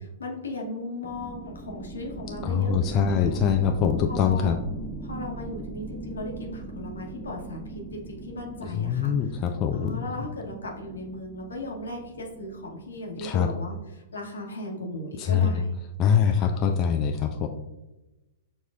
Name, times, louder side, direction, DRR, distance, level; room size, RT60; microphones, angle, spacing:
voice 1, 0.2-3.4 4.1-4.6 5.0-9.4 9.7-15.7 16.0-16.6, left 1 dB, 75° left, 1 dB, 1.0 m, -37 dB
sound 1, 1.0-13.3, right 2 dB, 5° right, 0.6 m, -39 dB
voice 2, 2.4-4.6 8.7-10.0 13.2-13.5 15.2-15.5 16.0-17.5, left 7 dB, 35° left, 5 dB, 0.3 m, -23 dB
6.4 x 3.0 x 2.4 m, 1.0 s
figure-of-eight pair, 105°, 0 cm